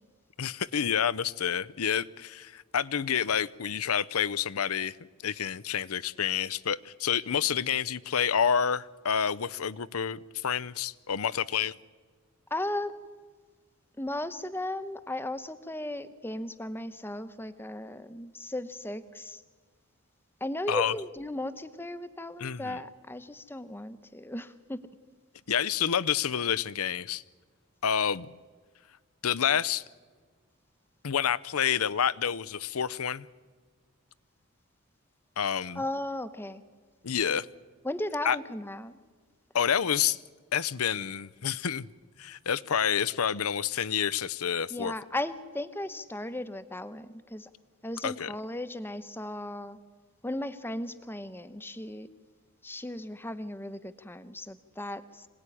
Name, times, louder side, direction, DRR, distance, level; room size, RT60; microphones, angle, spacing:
voice 1, 0.4-5.0 5.2-11.7 20.7-20.9 22.4-22.8 25.5-27.2 27.8-28.3 29.2-29.8 31.0-33.3 35.4-35.8 37.0-37.5 38.2-38.4 39.5-40.2 40.5-41.9 42.2-44.9 48.0-48.3, left 8 dB, 85° left, 0.7 m, -28 dB
voice 2, 12.5-13.0 14.0-19.4 20.4-24.8 35.7-36.6 37.8-38.9 44.7-47.5 47.8-49.8 50.2-52.1 52.6-55.3, left 1 dB, 10° left, 1.0 m, -36 dB
26.0 x 18.5 x 10.0 m
head